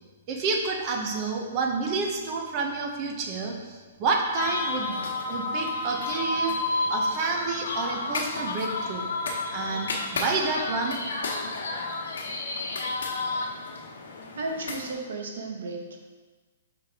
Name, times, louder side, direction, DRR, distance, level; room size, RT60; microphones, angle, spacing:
voice 1, 0.3-5.0 5.3-6.6 6.9-9.1 9.5-11.0, right 4 dB, 25° right, 2 dB, 0.7 m, -29 dB
sound 1, 4.4-14.9, left 3 dB, 85° left, 1.0 m, -31 dB
voice 2, 14.3-16.0, right 2 dB, 70° right, 2 dB, 1.0 m, -34 dB
5.7 x 3.6 x 4.9 m, 1.3 s
hypercardioid pair, 170°, 0 cm